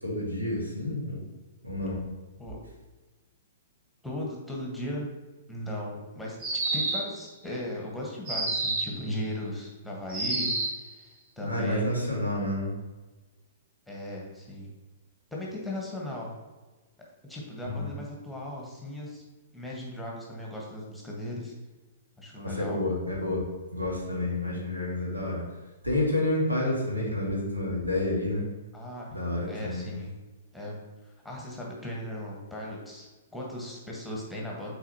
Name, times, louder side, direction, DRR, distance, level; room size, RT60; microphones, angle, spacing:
voice 1, 0.0-1.3 1.6-2.0 11.4-12.7 17.6-17.9 22.4-23.4 23.7-25.4 25.8-28.5 29.1-29.9, left 1 dB, 85° right, -3 dB, 1.8 m, -29 dB
voice 2, 4.0-5.1 5.5-11.9 13.9-14.7 15.3-16.3 17.3-19.2 19.5-21.5 22.2-22.8 24.4-24.5 28.7-29.1 29.5-30.1 30.5-30.8 31.0-34.7, left 1 dB, ahead, -3 dB, 1.3 m, -37 dB
sound 1, 6.4-7.2 8.3-9.0 10.1-10.8, right 2 dB, 35° right, 1.4 m, -29 dB
8.9 x 4.0 x 2.9 m, 1.2 s
figure-of-eight pair, 110°, 0 cm